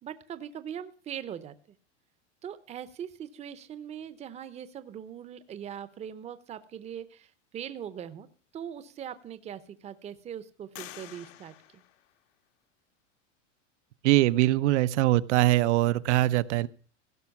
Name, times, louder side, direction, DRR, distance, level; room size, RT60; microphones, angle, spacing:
voice 1, 0.0-1.5 2.4-8.3 8.5-11.8, right 9 dB, 20° right, 13 dB, 0.7 m, -41 dB
sound 1, 8.5-8.6 9.2-9.8 10.7-12.7, left 13 dB, 80° left, 1.5 m, -49 dB
voice 2, 14.0-16.7, right 16 dB, 70° right, 17 dB, 0.7 m, -22 dB
16.5 x 6.1 x 7.1 m, 0.42 s
supercardioid pair, 145°, 37 cm